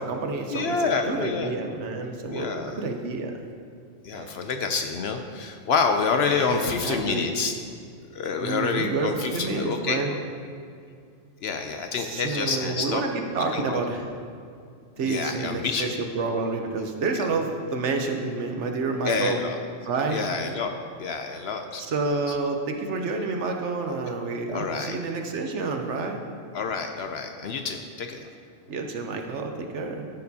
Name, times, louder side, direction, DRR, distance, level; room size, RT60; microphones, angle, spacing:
voice 1, 0.0-0.8 1.0-3.3 4.1-4.5 6.3-7.3 8.4-10.1 12.0-14.1 15.0-19.4 19.8-20.2 21.8-26.2 28.7-30.1, right 3 dB, 65° right, 4 dB, 1.1 m, -29 dB
voice 2, 0.5-1.5 2.3-2.8 4.0-7.5 8.1-10.2 11.4-13.0 13.5-13.8 15.0-15.9 19.1-19.6 20.1-20.7 21.0-21.8 24.5-25.0 26.5-28.2, left 5 dB, 65° left, 5 dB, 0.7 m, -27 dB
13.5 x 6.5 x 2.8 m, 2.3 s
omnidirectional pair, 1.3 m